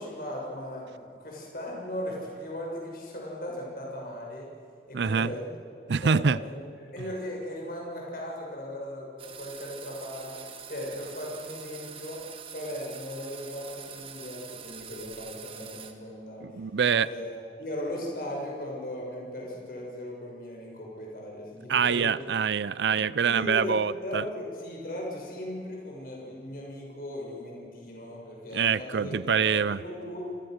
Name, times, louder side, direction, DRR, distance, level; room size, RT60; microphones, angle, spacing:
voice 1, 0.0-4.5 4.9-5.4 5.8-10.4 10.7-12.3 12.5-16.6 17.0-22.2 22.9-29.2 29.4-30.3, left 1 dB, 55° left, -1 dB, 6.7 m, -37 dB
voice 2, 4.9-5.3 5.9-6.4 16.4-17.1 21.7-24.2 28.5-29.8, right 6 dB, 80° right, 18 dB, 0.5 m, -25 dB
sound 1, 9.2-15.9, right 7 dB, 30° right, 1.7 m, -44 dB
29.5 x 21.0 x 6.5 m, 2.3 s
head